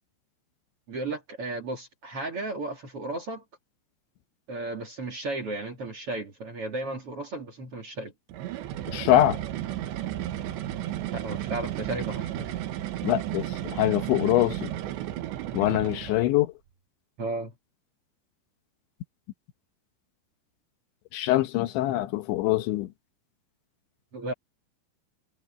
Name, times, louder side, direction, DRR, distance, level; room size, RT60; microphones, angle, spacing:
voice 1, 0.9-3.4 4.5-8.1 11.1-12.5 13.0-13.1 17.2-17.5 24.1-24.3, right 2 dB, 40° right, 2.6 m, -34 dB
sound 1, 8.3-16.3, right 13 dB, 80° right, 3.6 m, -33 dB
voice 2, 8.9-9.4 13.0-14.7 15.5-16.5 21.1-22.9, left 14 dB, 80° left, 3.5 m, -24 dB
omnidirectional pair, 5.2 m